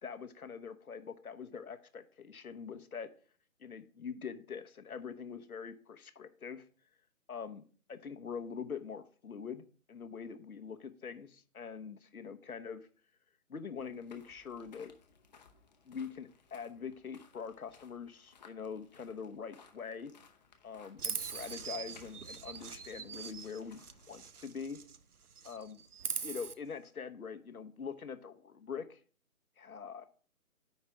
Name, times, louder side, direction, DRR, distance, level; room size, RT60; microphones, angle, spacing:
voice 1, 0.0-3.1 3.6-6.6 7.3-12.9 13.5-14.9 15.9-20.1 20.6-24.8 25.4-25.8 26.2-29.0 29.6-30.1, left 6 dB, 70° left, 10 dB, 1.2 m, -44 dB
sound 1, 13.8-24.3, left 5 dB, 30° left, 0.9 m, -62 dB
Chirp tweet, 21.0-25.0 25.3-26.5, right 6 dB, 85° right, 0.9 m, -42 dB
9.4 x 3.3 x 5.9 m, 0.41 s
figure-of-eight pair, 155°, 44 cm